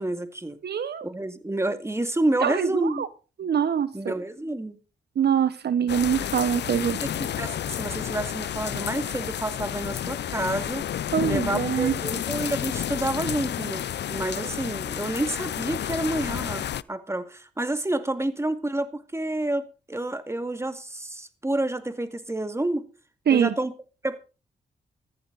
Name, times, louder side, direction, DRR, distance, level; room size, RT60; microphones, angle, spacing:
voice 1, 0.0-0.6 1.0-3.0 3.9-4.8 6.7-10.8 11.3-22.9 23.3-23.7 24.0-24.2, right 1 dB, 15° right, 10 dB, 2.1 m, -29 dB
voice 2, 0.6-1.1 2.4-3.1 3.4-4.1 5.2-7.0 11.1-12.0 23.3-23.5, right 8 dB, 65° right, 14 dB, 1.1 m, -24 dB
sound 1, 5.9-16.8, left 10 dB, 70° left, 0.6 m, -31 dB
15.0 x 14.0 x 4.0 m, 0.33 s
cardioid pair, 65°, 18 cm